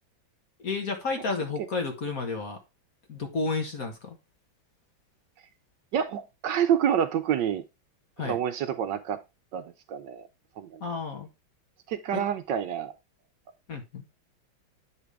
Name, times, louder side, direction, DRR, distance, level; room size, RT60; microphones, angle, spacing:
voice 1, 0.6-2.6 3.1-4.2 8.2-8.4 10.8-11.3 12.1-12.2 13.7-14.0, left 4 dB, 45° left, 1.7 m, -31 dB
voice 2, 5.9-7.6 8.2-9.2 9.5-10.2 10.6-10.8 11.9-12.9, right 9 dB, 70° right, 1.2 m, -28 dB
8.5 x 5.8 x 3.3 m
omnidirectional pair, 2.2 m